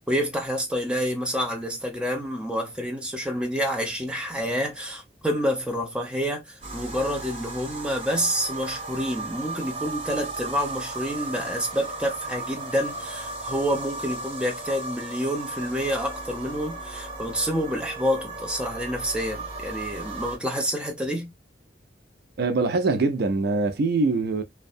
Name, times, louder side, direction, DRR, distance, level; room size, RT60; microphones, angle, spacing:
voice 1, 0.1-21.3, equal, 5° right, 0.7 m, -28 dB
sound 1, 6.6-20.4, right 3 dB, 35° right, 1.1 m, -36 dB
voice 2, 22.4-24.4, right 3 dB, 65° right, 0.4 m, -23 dB
2.6 x 2.2 x 2.4 m
head